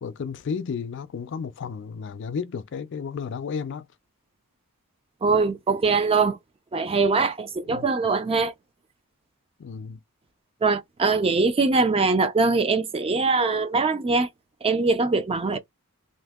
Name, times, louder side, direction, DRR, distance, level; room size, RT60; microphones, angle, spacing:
voice 1, 0.0-3.9 7.6-7.9 9.6-10.0 15.5-15.6, left 6 dB, 55° left, 0.4 m, -33 dB
voice 2, 5.2-6.4 6.7-8.5 10.6-14.3 14.6-15.6, right 4 dB, 25° right, 0.4 m, -22 dB
2.7 x 2.6 x 3.5 m
head